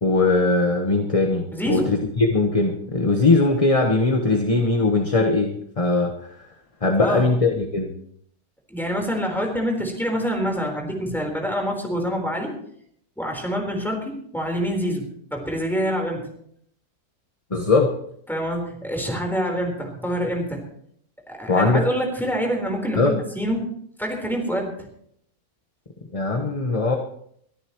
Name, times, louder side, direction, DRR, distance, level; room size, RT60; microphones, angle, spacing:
voice 1, 0.0-6.3 6.8-7.9 17.5-17.9 21.5-21.8 23.0-23.1 26.1-27.0, left 3 dB, 25° left, 3 dB, 1.1 m, -20 dB
voice 2, 1.5-1.9 7.0-7.3 8.7-12.5 13.2-15.1 15.3-16.2 18.3-20.6 21.3-23.6 24.0-24.9, equal, ahead, 1 dB, 4.0 m, -26 dB
23.0 x 13.5 x 3.1 m, 0.67 s
omnidirectional pair, 1.7 m